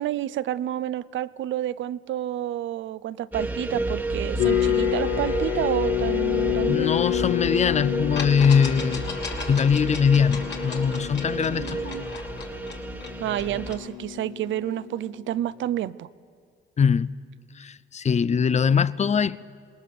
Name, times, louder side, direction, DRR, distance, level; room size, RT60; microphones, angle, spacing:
voice 1, 0.0-6.9 11.5-12.2 13.2-16.1, right 12 dB, 70° right, 0.6 m, -29 dB
sound 1, 3.3-13.8, right 2 dB, 10° right, 1.3 m, -31 dB
sound 2, 4.4-15.5, left 14 dB, 85° left, 0.8 m, -29 dB
voice 2, 6.7-9.2 9.5-12.0 16.8-17.1 17.6-19.4, left 6 dB, 35° left, 0.5 m, -22 dB
sound 3, 7.5-7.7 8.2-13.9, left 5 dB, 60° left, 3.0 m, -38 dB
27.0 x 19.5 x 6.8 m
cardioid pair, 90°, 20 cm